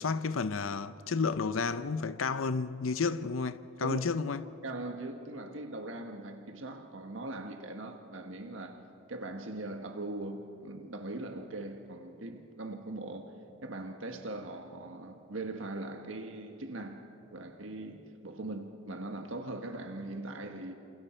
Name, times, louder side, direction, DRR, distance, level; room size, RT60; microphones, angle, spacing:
voice 1, 0.0-4.5, left 4 dB, 85° left, 0.7 m, -31 dB
voice 2, 4.6-8.8 9.1-13.3 13.6-20.7, right 2 dB, 80° right, 1.5 m, -40 dB
28.5 x 27.5 x 4.5 m
head